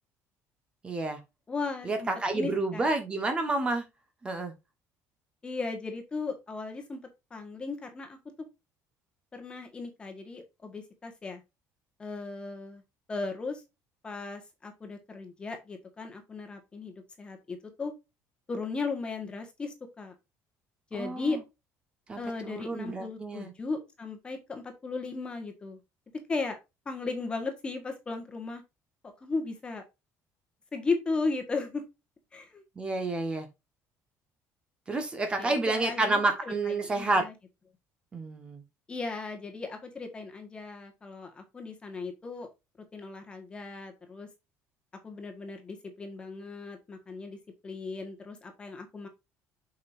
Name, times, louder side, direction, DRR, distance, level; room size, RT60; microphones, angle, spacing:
voice 1, 0.8-1.2 1.8-3.8 4.2-4.5 20.9-21.4 22.1-23.5 32.8-33.5 34.9-37.2 38.1-38.6, right 2 dB, 15° right, 1.4 m, -29 dB
voice 2, 1.5-2.9 5.4-7.0 7.3-8.2 9.3-11.4 12.0-12.8 13.1-13.6 14.0-17.9 18.5-20.1 20.9-21.4 22.2-25.8 26.3-26.6 26.8-28.6 29.2-29.8 30.7-31.8 32.3-32.6 35.4-36.2 36.5-37.3 38.9-42.5 42.9-44.3 45.0-47.4 47.6-49.1, left 3 dB, 15° left, 1.5 m, -36 dB
7.7 x 5.6 x 2.6 m
cardioid pair, 180°, 6 cm